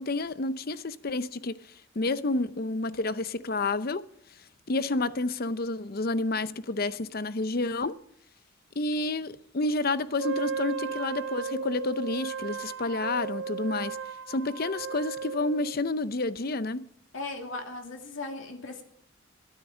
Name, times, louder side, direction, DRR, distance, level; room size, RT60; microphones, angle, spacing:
voice 1, 0.0-4.0 4.7-8.0 8.8-14.0 14.3-16.9, left 2 dB, 45° left, 0.7 m, -30 dB
Wind instrument woodwind instrument, 10.2-15.8, right 6 dB, 65° right, 0.5 m, -35 dB
voice 2, 17.1-18.8, left 3 dB, 70° left, 2.5 m, -37 dB
13.0 x 12.5 x 6.2 m
head